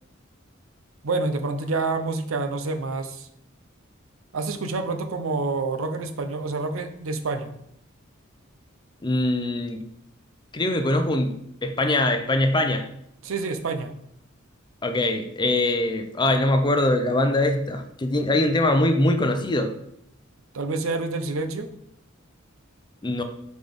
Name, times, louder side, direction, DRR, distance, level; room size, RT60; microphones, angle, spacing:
voice 1, 1.0-3.3 4.3-7.5 13.2-13.9 20.5-21.7, right 3 dB, 80° right, 8 dB, 0.6 m, -28 dB
voice 2, 9.0-9.8 10.5-11.3 11.6-12.8 14.8-19.7 23.0-23.2, left 1 dB, 20° left, 7 dB, 0.5 m, -22 dB
5.0 x 3.9 x 5.2 m, 0.75 s
head